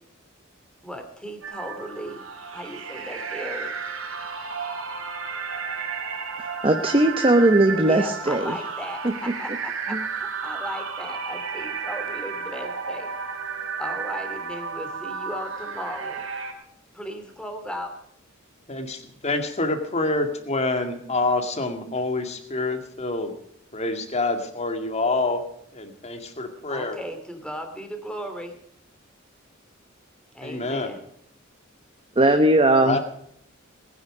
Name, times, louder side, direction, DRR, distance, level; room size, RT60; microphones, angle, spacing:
voice 1, 0.8-2.2 2.5-3.8 7.8-13.1 13.8-16.2 16.9-17.9 26.7-28.6 30.3-31.0, equal, 5° left, 2.6 m, -36 dB
sound 1, 1.4-16.5, right 5 dB, 90° right, 3.2 m, -33 dB
voice 2, 6.6-8.5 9.9-10.0 32.2-33.0, right 1 dB, 25° right, 1.0 m, -18 dB
voice 3, 18.7-23.3 23.7-25.4 25.7-27.0 30.4-30.9 32.8-33.0, left 2 dB, 30° left, 2.2 m, -27 dB
20.5 x 10.0 x 5.0 m
head